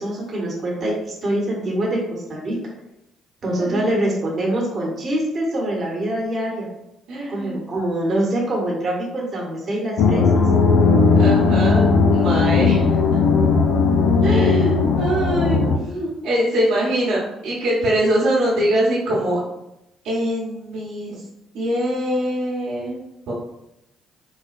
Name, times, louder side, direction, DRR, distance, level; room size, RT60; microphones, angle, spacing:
voice 1, 0.0-2.6 3.4-6.7 7.3-10.4, right 1 dB, 40° right, -3 dB, 1.0 m, -24 dB
voice 2, 7.1-7.6 11.2-11.8 12.1-13.0 14.2-19.4 20.0-21.2 21.5-23.3, right 1 dB, 75° right, -7 dB, 1.0 m, -23 dB
sound 1, 10.0-15.8, left 4 dB, 70° left, 0.4 m, -17 dB
4.0 x 2.2 x 2.4 m, 0.87 s
hypercardioid pair, 50°, 0 cm